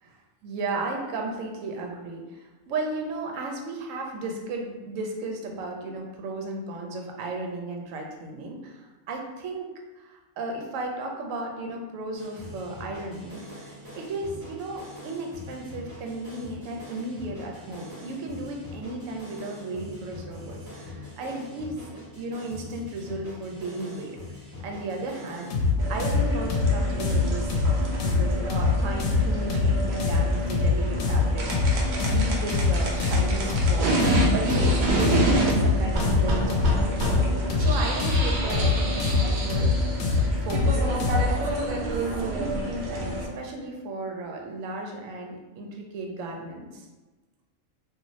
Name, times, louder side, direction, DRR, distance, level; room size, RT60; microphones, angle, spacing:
voice 1, 0.0-9.7 10.0-24.2 24.6-27.5 28.0-35.1 35.4-37.0 37.6-39.8 40.4-41.0 41.3-46.9, right 2 dB, 75° right, 1 dB, 0.9 m, -35 dB
sound 1, 12.1-25.7, left 2 dB, 20° right, 1.0 m, -43 dB
sound 2, 25.5-41.4, left 4 dB, 80° left, 1.0 m, -24 dB
sound 3, 25.8-43.3, right 1 dB, 60° right, 0.5 m, -28 dB
2.6 x 2.5 x 3.0 m, 1.2 s
omnidirectional pair, 1.4 m